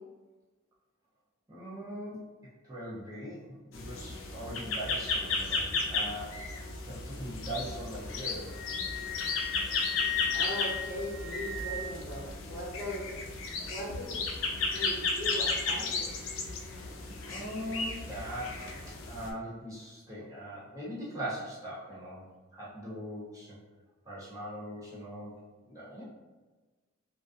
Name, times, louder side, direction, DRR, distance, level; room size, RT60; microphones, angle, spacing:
voice 1, 1.5-2.3 2.7-6.5 6.9-8.6 16.8-16.9 17.3-22.2 22.5-23.6 24.0-26.0, equal, 15° right, -9 dB, 0.6 m, -41 dB
sound 1, 3.7-19.3, left 3 dB, 75° left, 0.4 m, -34 dB
Wind instrument woodwind instrument, 8.3-12.1, left 7 dB, ahead, 1.1 m, -37 dB
voice 2, 10.3-13.1 13.7-14.3 14.7-16.2, equal, 30° left, -6 dB, 0.6 m, -39 dB
2.3 x 2.2 x 2.5 m, 1.2 s
head